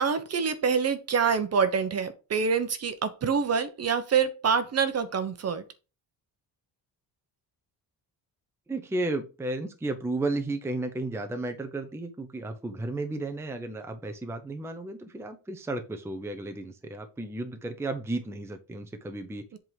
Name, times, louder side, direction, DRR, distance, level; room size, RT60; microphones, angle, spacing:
voice 1, 0.0-5.6 19.5-19.6, right 6 dB, 40° right, 0.9 m, -26 dB
voice 2, 8.7-19.5, right 2 dB, 5° right, 0.6 m, -33 dB
7.9 x 3.8 x 4.7 m
cardioid pair, 165°, 41 cm